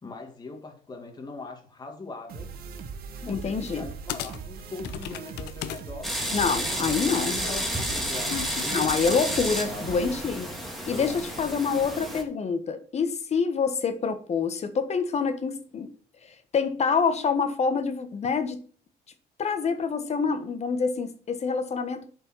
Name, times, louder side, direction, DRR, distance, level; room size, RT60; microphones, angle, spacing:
voice 1, 0.0-2.5 3.2-6.1 6.5-9.2 9.6-10.1 10.9-11.4, left 3 dB, 25° left, 2 dB, 2.2 m, -41 dB
sound 1, 2.3-10.3, right 6 dB, 65° right, 1.7 m, -40 dB
voice 2, 3.3-3.9 6.3-7.4 8.7-10.5 10.9-15.9 16.5-18.6 19.4-22.0, left 5 dB, 40° left, 10 dB, 1.4 m, -26 dB
sound 2, 3.7-3.8 4.1-5.8 6.2-8.6, left 13 dB, 85° left, 0.8 m, -37 dB
sound 3, 6.0-12.2, equal, ahead, 2.5 m, -31 dB
8.2 x 5.5 x 6.2 m, 0.44 s
cardioid pair, 110°, 17 cm